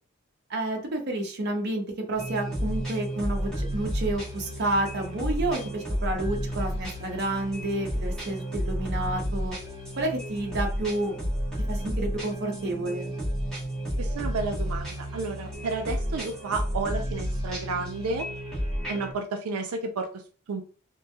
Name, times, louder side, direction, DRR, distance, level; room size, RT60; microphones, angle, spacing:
voice 1, 0.5-9.6 9.9-11.2 11.7-13.1, right 2 dB, 50° right, 2 dB, 0.6 m, -30 dB
sound 1, 2.1-19.1, equal, 5° left, 1.2 m, -31 dB
voice 2, 14.0-18.3 18.9-20.1 20.5-20.6, right 3 dB, 90° right, 5 dB, 0.4 m, -31 dB
3.0 x 2.5 x 2.2 m, 0.38 s
head